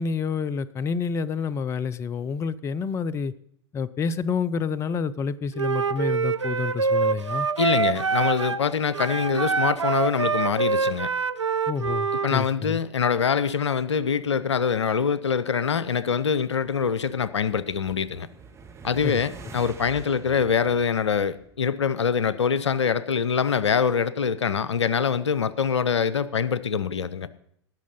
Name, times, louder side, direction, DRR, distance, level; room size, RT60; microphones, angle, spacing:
voice 1, 0.0-3.3 3.7-7.5 11.7-12.8 19.0-19.2 19.4-19.5, left 5 dB, 20° left, 0.5 m, -28 dB
Wind instrument woodwind instrument, 5.5-8.6 8.9-12.3, right 5 dB, 90° right, 0.5 m, -25 dB
voice 2, 7.6-11.1 12.2-18.3 18.8-27.3, left 6 dB, 80° left, 0.7 m, -24 dB
sound 1, 16.7-21.9, right 5 dB, 20° right, 1.8 m, -46 dB
18.0 x 6.2 x 5.5 m
figure-of-eight pair, 95°, 15 cm